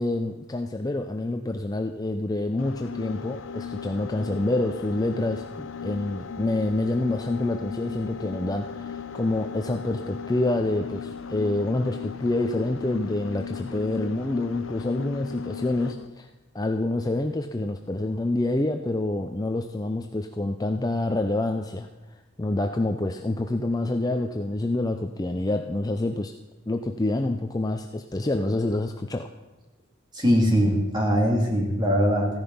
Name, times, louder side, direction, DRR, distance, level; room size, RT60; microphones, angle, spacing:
voice 1, 0.0-16.3 16.5-21.9 22.4-26.4 26.7-29.3, left 2 dB, 15° left, 6 dB, 0.4 m, -27 dB
sound 1, 2.6-16.1, left 6 dB, 65° left, 0.7 m, -37 dB
voice 2, 30.1-32.3, equal, 20° right, 0 dB, 2.5 m, -21 dB
15.5 x 10.5 x 5.4 m, 1.1 s
head